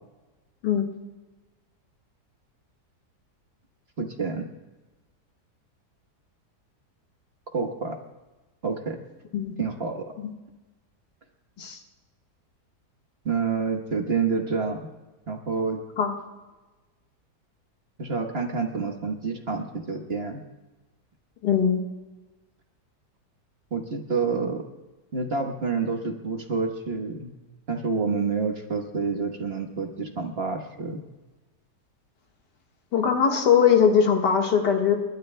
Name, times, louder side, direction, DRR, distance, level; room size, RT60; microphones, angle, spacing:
voice 1, 4.0-4.4 7.5-8.0 8.6-9.0 9.6-10.0 13.2-14.8 15.3-15.8 18.0-20.4 23.7-24.6 25.1-27.3 27.7-31.0, right 4 dB, 40° right, 4 dB, 1.2 m, -28 dB
voice 2, 21.4-21.8 32.9-35.0, left 7 dB, 85° left, 2 dB, 2.1 m, -21 dB
29.5 x 12.0 x 2.2 m, 1.2 s
omnidirectional pair, 1.8 m